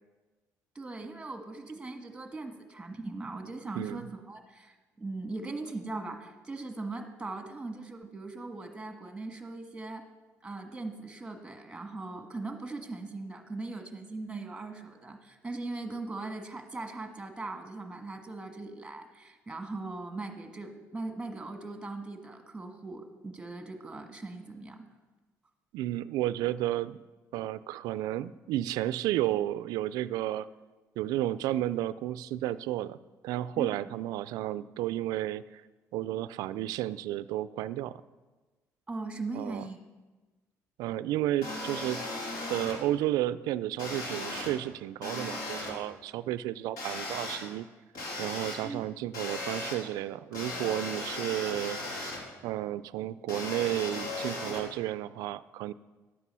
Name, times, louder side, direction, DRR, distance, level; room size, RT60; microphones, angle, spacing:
voice 1, 0.7-10.0 10.4-24.8 33.5-33.7 38.9-39.8 48.6-48.8, right 3 dB, 10° right, 5 dB, 1.5 m, -40 dB
voice 2, 25.7-27.0 27.3-30.5 31.0-33.0 33.2-35.6 35.9-38.0 39.4-39.6 40.8-42.0 42.5-47.7 48.2-51.8 52.4-55.7, right 14 dB, 80° right, 16 dB, 0.3 m, -32 dB
sound 1, 41.4-42.7 43.8-44.5 45.0-45.7 46.8-47.4 47.9-48.5 49.1-49.7 50.3-52.2 53.3-54.6, left 2 dB, 75° left, 3.2 m, -36 dB
11.0 x 8.4 x 5.6 m, 1.2 s
cardioid pair, 90°, 6 cm